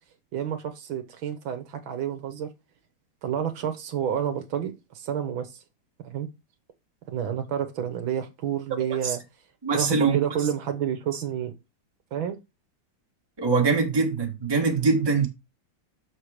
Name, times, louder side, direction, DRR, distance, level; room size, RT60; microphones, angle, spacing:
voice 1, 0.3-2.5 3.2-5.6 6.0-6.3 7.1-9.2 9.7-11.5 12.1-12.4, right 9 dB, 70° right, 1.6 m, -29 dB
voice 2, 9.6-10.3 13.4-15.3, right 4 dB, 15° right, 1.4 m, -23 dB
6.6 x 4.5 x 4.9 m
omnidirectional pair, 2.3 m